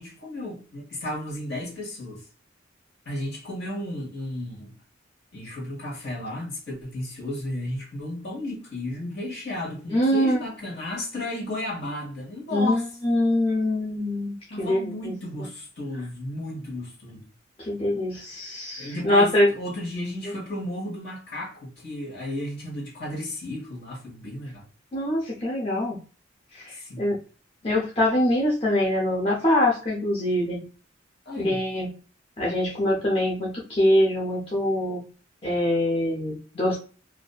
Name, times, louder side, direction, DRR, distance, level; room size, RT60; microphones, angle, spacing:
voice 1, 0.0-2.2 3.0-4.7 5.3-12.8 14.5-17.2 18.8-24.7 26.7-27.1 31.2-31.6, left 1 dB, 60° left, 1.3 m, -34 dB
voice 2, 9.9-10.4 12.5-15.1 17.6-19.5 24.9-26.0 26.5-27.2 27.6-30.6 31.4-31.9 32.4-35.0 35.4-36.8, left 1 dB, 30° left, 0.6 m, -24 dB
2.7 x 2.4 x 2.2 m
head